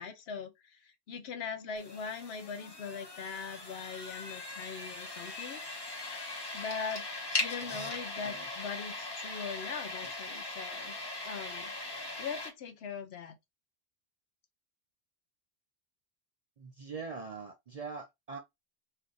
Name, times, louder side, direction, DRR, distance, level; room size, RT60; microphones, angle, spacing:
voice 1, 0.0-5.6 6.5-11.0 11.2-11.7 12.2-13.4, left 6 dB, 70° left, 0.9 m, -41 dB
sound 1, 1.8-12.5, left 2 dB, 25° left, 1.0 m, -40 dB
voice 2, 16.6-18.4, right 4 dB, 55° right, 0.4 m, -42 dB
2.7 x 2.4 x 3.7 m
omnidirectional pair, 1.1 m